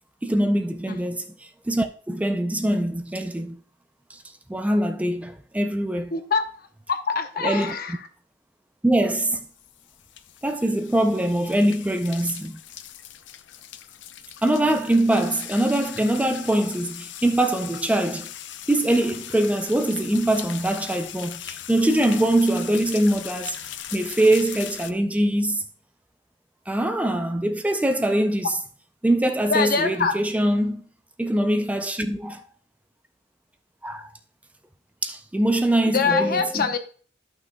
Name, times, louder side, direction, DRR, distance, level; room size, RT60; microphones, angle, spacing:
voice 1, 0.2-3.6 4.1-4.2 4.5-6.1 7.4-7.8 8.8-9.4 10.4-12.6 14.4-18.3 18.7-25.6 26.7-28.6 29.0-30.8 31.2-32.5 33.8-34.1 35.0-36.7, right 1 dB, 10° right, 0.4 m, -23 dB
voice 2, 6.1-6.4 6.9-8.0 29.5-30.1 35.9-36.8, left 5 dB, 55° left, 0.8 m, -24 dB
sound 1, 9.2-24.9, left 11 dB, 80° left, 0.5 m, -39 dB
13.5 x 6.0 x 2.2 m
head